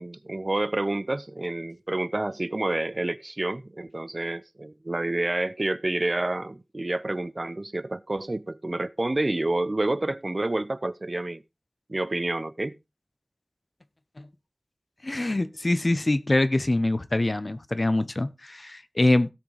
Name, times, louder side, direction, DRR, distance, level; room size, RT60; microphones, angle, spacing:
voice 1, 0.0-11.4 11.9-12.8, right 2 dB, 55° right, 0.6 m, -29 dB
voice 2, 15.0-19.3, left 2 dB, 55° left, 0.9 m, -24 dB
17.0 x 6.1 x 3.4 m
wide cardioid pair, 45°, 0 cm